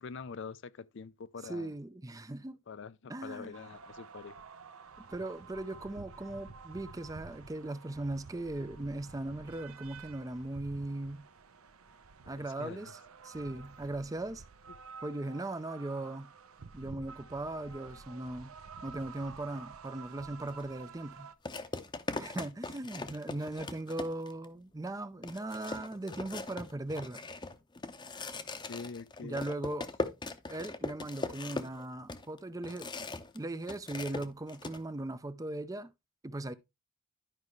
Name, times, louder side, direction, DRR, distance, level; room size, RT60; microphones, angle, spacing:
voice 1, 0.0-1.7 2.7-4.4 12.2-12.9 28.7-29.5, left 5 dB, 60° left, 0.5 m, -45 dB
voice 2, 1.4-2.6 3.1-3.6 5.0-11.3 12.3-12.9 13.2-14.4 15.0-16.3 16.7-18.5 18.8-21.3 22.2-27.2 29.2-29.9 30.5-32.9 33.3-35.9 36.2-36.5, right 2 dB, 15° right, 0.4 m, -38 dB
sound 1, 3.5-21.4, right 5 dB, 80° right, 0.8 m, -51 dB
sound 2, 20.5-20.6 21.5-24.5 24.9-25.0 25.2-33.4 33.6-34.8, left 2 dB, 20° left, 0.7 m, -40 dB
12.0 x 5.4 x 3.1 m
head